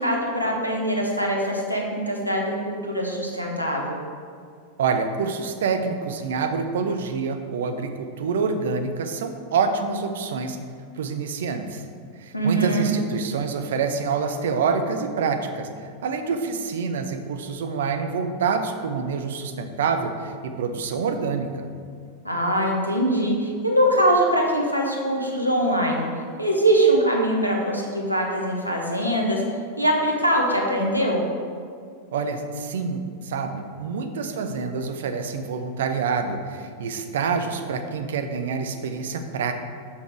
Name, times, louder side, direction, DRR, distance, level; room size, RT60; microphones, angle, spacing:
voice 1, 0.0-4.0 12.3-12.9 22.2-26.1 26.4-29.4 29.8-31.2, right 1 dB, 90° left, -1 dB, 1.2 m, -22 dB
voice 2, 4.8-10.6 11.0-11.8 12.2-21.7 32.1-39.5, right 5 dB, 60° right, 7 dB, 0.6 m, -27 dB
6.6 x 5.7 x 4.6 m, 2.1 s
figure-of-eight pair, 90°, 0 cm